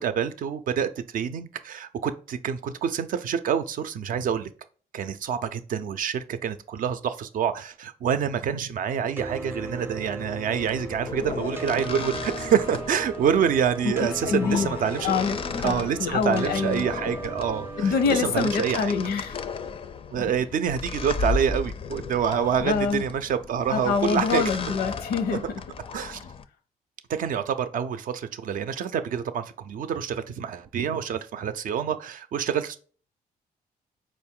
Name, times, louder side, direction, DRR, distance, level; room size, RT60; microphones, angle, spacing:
voice 1, 0.0-4.5 4.9-15.2 15.6-18.9 20.1-24.5 25.9-26.2 27.1-32.8, right 8 dB, 60° right, 0.5 m, -27 dB
sound 1, 9.2-18.8, right 2 dB, 15° right, 0.6 m, -37 dB
sound 2, 10.6-26.4, left 4 dB, 35° left, 0.4 m, -35 dB
voice 2, 14.0-14.7 15.0-15.4 15.6-16.9 17.8-19.4 20.2-20.3 22.6-23.0 23.7-25.4, left 6 dB, 90° left, 0.7 m, -25 dB
4.3 x 2.6 x 3.6 m
cardioid pair, 125°, 16 cm